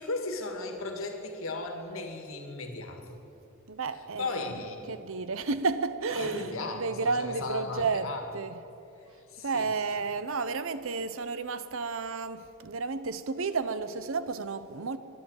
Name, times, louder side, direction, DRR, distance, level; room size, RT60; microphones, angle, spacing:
voice 1, 0.0-3.2 3.9-5.0 6.1-8.3 9.0-9.7, left 2 dB, 70° left, 1.8 m, -36 dB
voice 2, 3.7-4.5 4.9-8.6 9.4-15.0, right 4 dB, 65° right, 0.6 m, -32 dB
11.5 x 11.0 x 8.8 m
head